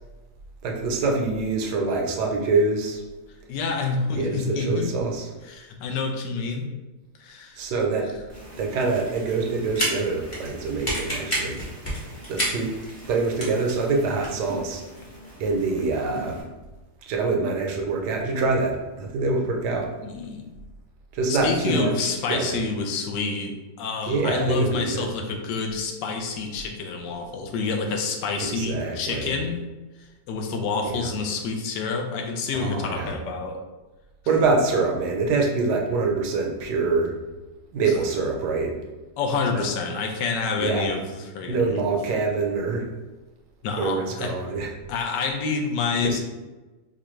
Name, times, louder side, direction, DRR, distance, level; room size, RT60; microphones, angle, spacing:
voice 1, 0.6-3.0 4.1-5.3 7.6-8.1 8.6-11.6 12.3-12.7 13.1-14.8 15.4-16.4 17.0-19.9 21.1-22.6 24.1-25.1 28.4-29.3 30.8-31.1 32.5-33.1 34.3-37.1 37.7-38.8 39.5-39.6 40.6-40.9 41.5-42.9 43.8-44.7 46.0-46.2, right 3 dB, 70° right, 0 dB, 1.2 m, -25 dB
voice 2, 3.5-4.9 5.5-6.7 7.2-7.6 20.0-20.5 21.3-29.7 30.3-33.6 39.2-41.8 43.6-44.4 44.9-46.2, left 4 dB, 75° left, 3 dB, 1.2 m, -28 dB
sound 1, 8.3-16.4, equal, 25° left, 0.8 m, -33 dB
4.8 x 2.2 x 3.0 m, 1.2 s
omnidirectional pair, 1.9 m